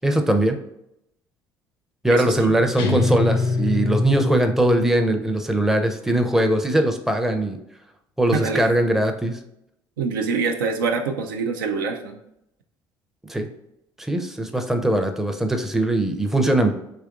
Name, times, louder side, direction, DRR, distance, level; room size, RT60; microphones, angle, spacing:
voice 1, 0.0-0.6 2.0-7.6 8.2-9.4 13.3-13.5 14.0-16.7, right 1 dB, 5° right, 5 dB, 0.5 m, -21 dB
voice 2, 2.1-2.5 8.3-8.6 10.0-12.2, right 4 dB, 80° right, 4 dB, 0.4 m, -25 dB
Guitar, 2.8-5.4, left 3 dB, 75° left, 0.5 m, -24 dB
3.4 x 2.9 x 2.4 m, 0.79 s
hypercardioid pair, 55°, 11 cm